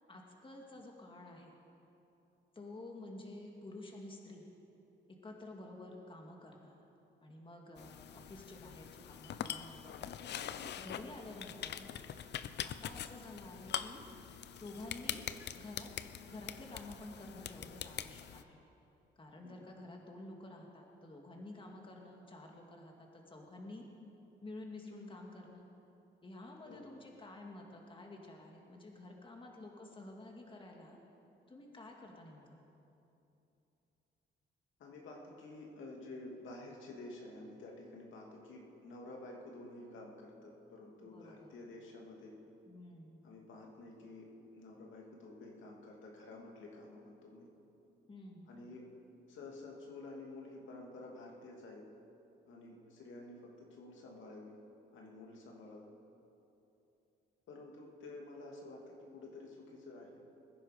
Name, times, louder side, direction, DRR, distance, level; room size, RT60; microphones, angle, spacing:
voice 1, 0.1-1.6 2.5-4.5 5.1-6.9 7.2-10.1 10.8-11.9 12.6-14.0 14.6-15.2 15.6-15.9 16.2-18.6 19.2-23.9 24.4-25.7 26.2-31.0 31.5-32.6 41.0-41.5 42.7-43.2 48.1-48.5, left 2 dB, 25° left, 1 dB, 2.1 m, -50 dB
sound 1, 7.8-18.4, left 10 dB, 60° left, 0.6 m, -44 dB
voice 2, 34.8-42.3 43.2-47.5 48.5-48.9 49.3-51.8 52.5-54.6 54.9-55.8 57.5-60.2, left 2 dB, 75° left, -1 dB, 2.5 m, -50 dB
21.0 x 10.5 x 5.1 m, 2.9 s
cardioid pair, 90°, 20 cm